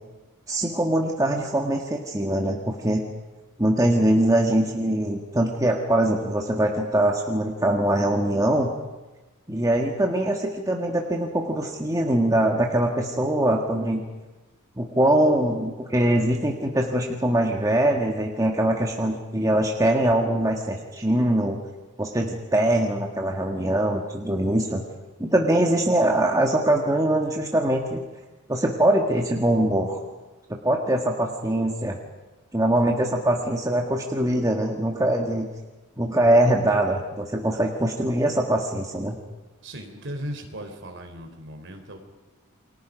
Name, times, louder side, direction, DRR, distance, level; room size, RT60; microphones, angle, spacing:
voice 1, 0.5-3.0 3.6-8.7 9.5-14.0 14.8-21.6 22.0-24.8 25.2-28.0 28.5-30.0 30.6-32.0 32.5-35.5 36.0-39.2, right 1 dB, 15° right, 1 dB, 1.7 m, -22 dB
voice 2, 39.6-42.0, equal, 55° right, 4 dB, 3.8 m, -37 dB
29.5 x 23.0 x 5.2 m, 1.1 s
head